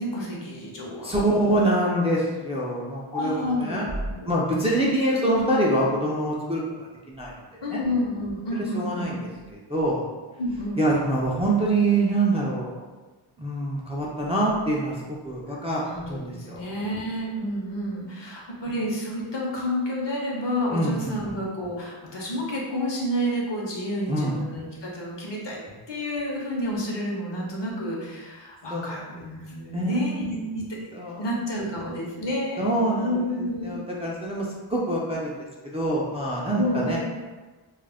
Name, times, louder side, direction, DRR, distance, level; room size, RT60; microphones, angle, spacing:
voice 1, 0.0-1.1 3.1-4.4 7.6-9.2 10.4-10.9 15.5-15.6 15.8-25.6 25.9-30.8 31.2-32.7 33.0-33.8 36.6-37.0, left 1 dB, 60° left, -3 dB, 0.7 m, -30 dB
voice 2, 1.0-3.8 4.3-7.3 7.7-7.8 8.7-9.2 9.5-10.0 10.8-12.8 13.4-16.6 20.7-21.3 24.1-24.4 28.7-28.9 29.7-30.1 30.9-31.2 31.6-31.9 32.6-35.4 35.7-37.0, right 1 dB, 15° right, -5 dB, 0.3 m, -25 dB
2.4 x 2.0 x 3.3 m, 1.2 s
wide cardioid pair, 80°, 49 cm